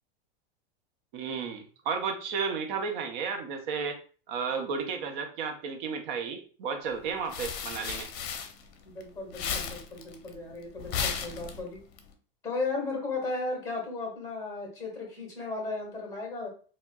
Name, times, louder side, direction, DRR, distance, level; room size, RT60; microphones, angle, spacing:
voice 1, 1.1-4.0 4.3-8.1, right 5 dB, 50° right, 5 dB, 0.7 m, -33 dB
sound 1, 6.9-9.0 9.3-12.0, left 6 dB, 60° left, 0.7 m, -35 dB
voice 2, 8.8-11.8 12.4-16.5, left 3 dB, 10° left, 0 dB, 1.6 m, -35 dB
4.5 x 2.2 x 2.3 m, 0.40 s
supercardioid pair, 135°, 30 cm